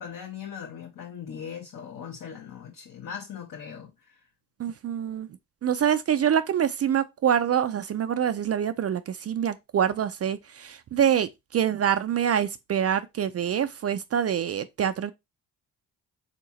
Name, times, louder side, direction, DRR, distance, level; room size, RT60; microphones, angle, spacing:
voice 1, 0.0-4.2, left 8 dB, 50° left, 0.9 m, -39 dB
voice 2, 4.6-5.3 5.6-15.1, right 9 dB, 40° right, 0.4 m, -25 dB
3.7 x 2.8 x 2.9 m
supercardioid pair, 50°, 40 cm